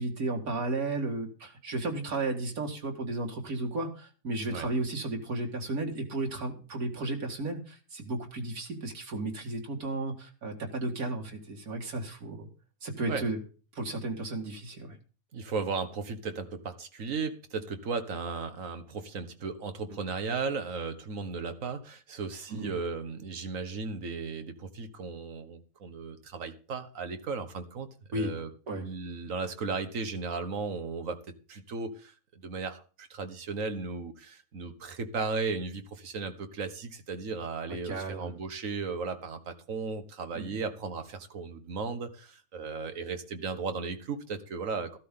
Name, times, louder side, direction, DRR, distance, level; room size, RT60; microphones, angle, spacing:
voice 1, 0.0-12.5 12.8-13.4 13.7-15.0 22.5-22.8 28.1-28.3 28.7-28.9 37.8-38.3 40.3-40.6, right 2 dB, 90° right, 1 dB, 2.6 m, -34 dB
voice 2, 15.3-27.9 28.1-28.5 28.8-31.2 31.5-45.0, right 4 dB, 65° right, 8 dB, 1.7 m, -35 dB
13.5 x 12.5 x 3.8 m, 0.37 s
omnidirectional pair, 1.5 m